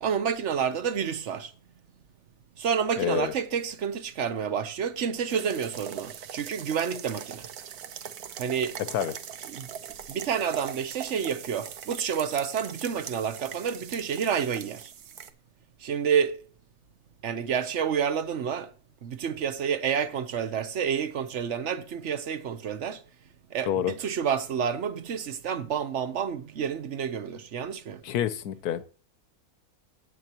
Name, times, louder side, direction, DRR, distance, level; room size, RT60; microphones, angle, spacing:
voice 1, 0.0-1.5 2.6-7.5 8.4-8.8 9.5-9.7 10.1-14.9 15.8-16.4 17.2-18.7 19.0-23.0 23.5-28.0, right 7 dB, 55° right, 1.1 m, -29 dB
voice 2, 3.0-3.3 8.9-9.1 23.7-23.9 28.0-28.8, left 10 dB, 75° left, 1.3 m, -27 dB
sound 1, 5.3-15.3, right 8 dB, 75° right, 1.4 m, -41 dB
17.5 x 7.8 x 3.0 m
omnidirectional pair, 1.6 m